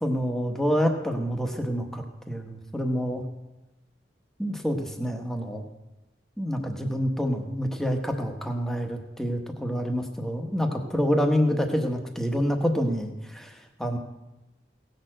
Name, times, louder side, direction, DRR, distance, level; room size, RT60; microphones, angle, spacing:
voice 1, 0.0-3.2 4.4-5.6 6.4-13.5 13.8-14.0, equal, 5° left, 4 dB, 1.2 m, -27 dB
17.5 x 6.7 x 7.7 m, 1.0 s
head